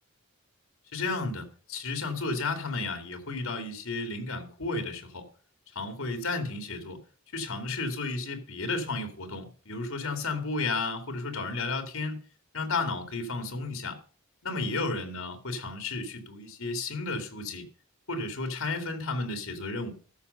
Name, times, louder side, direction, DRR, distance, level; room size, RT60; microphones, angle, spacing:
voice 1, 0.9-5.3 5.7-7.0 7.3-12.2 12.5-14.0 14.4-17.7 18.1-19.9, left 3 dB, 75° left, 2.6 m, -33 dB
14.0 x 6.8 x 5.6 m
head